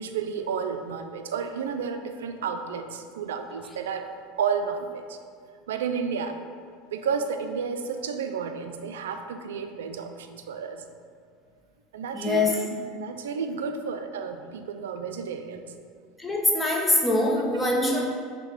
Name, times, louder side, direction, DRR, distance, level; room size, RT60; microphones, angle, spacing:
voice 1, 0.0-4.1 4.4-5.2 5.7-6.4 6.9-10.9 11.9-12.7 12.9-15.7, right 6 dB, 75° right, 7 dB, 0.3 m, -31 dB
voice 2, 12.1-12.6 16.2-18.0, left 2 dB, 10° left, -1 dB, 0.8 m, -23 dB
6.2 x 2.2 x 3.5 m, 2.1 s
figure-of-eight pair, 75°, 0 cm